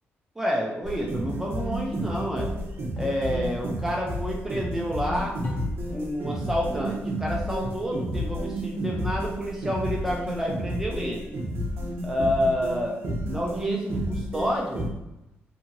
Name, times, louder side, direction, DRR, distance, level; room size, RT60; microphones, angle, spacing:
voice 1, 0.4-2.5 3.0-5.4 5.9-11.3 12.0-13.0 13.3-14.9, equal, 10° right, -2 dB, 0.4 m, -29 dB
sound 1, 0.8-14.9, right 1 dB, 60° right, 0.6 m, -31 dB
sound 2, 3.0-3.3 5.4-6.0 7.6-8.0 10.0-10.6, left 2 dB, 45° left, 0.7 m, -39 dB
2.7 x 2.5 x 2.8 m, 0.91 s
wide cardioid pair, 170°, 4 cm